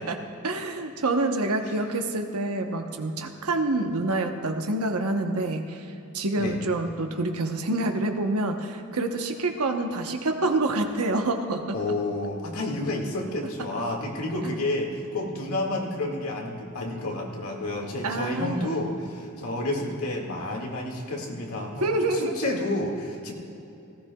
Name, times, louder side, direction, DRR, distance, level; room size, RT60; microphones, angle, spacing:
voice 1, 0.4-5.9 6.1-11.8 18.0-18.7 21.8-22.6, right 2 dB, 90° right, 4 dB, 1.0 m, -27 dB
voice 2, 11.7-23.3, left 2 dB, 85° left, 0 dB, 2.0 m, -30 dB
18.0 x 15.5 x 2.4 m, 2.8 s
head